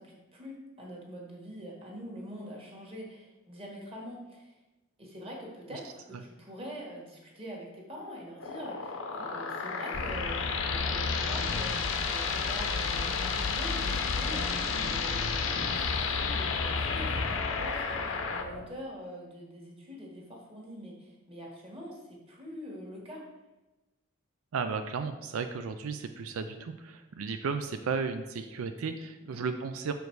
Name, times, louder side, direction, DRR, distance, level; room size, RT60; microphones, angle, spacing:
voice 1, 0.0-4.6 5.0-23.2 29.2-29.5, equal, 25° right, -2 dB, 1.5 m, -44 dB
sound 1, 8.4-18.4, left 5 dB, 70° left, 0.7 m, -32 dB
sound 2, 9.9-18.7, left 3 dB, 40° left, 0.4 m, -36 dB
voice 2, 24.5-29.9, right 5 dB, 85° right, 8 dB, 0.4 m, -34 dB
6.4 x 5.1 x 4.6 m, 1.1 s
head